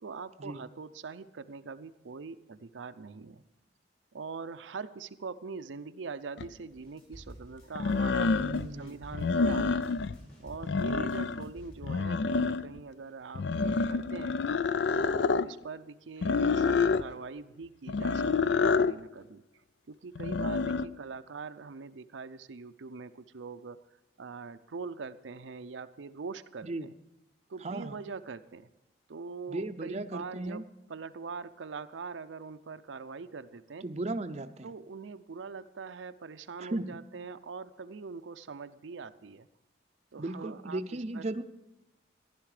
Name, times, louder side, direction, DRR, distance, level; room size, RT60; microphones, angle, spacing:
voice 1, 0.0-3.4 4.1-8.5 8.8-10.0 10.4-14.4 14.9-19.4 19.9-23.8 24.2-26.9 27.5-28.7 29.1-33.9 34.6-39.5 40.1-40.8 41.1-41.2, right 4 dB, 90° right, 10 dB, 0.6 m, -43 dB
sound 1, 6.4-6.5 7.8-8.7 9.1-10.2 10.5-11.5 11.8-12.8 13.3-15.5 16.2-17.1 17.9-19.0 20.2-20.9, left 4 dB, 70° left, 0.4 m, -28 dB
sound 2, 6.7-11.8, equal, 55° left, 5.0 m, -50 dB
voice 2, 8.4-9.0 10.9-11.1 26.6-26.9 27.6-28.0 29.5-30.6 33.8-34.7 36.6-37.0 40.2-41.4, right 2 dB, 35° right, 8 dB, 0.5 m, -36 dB
15.0 x 11.0 x 4.9 m, 0.90 s
head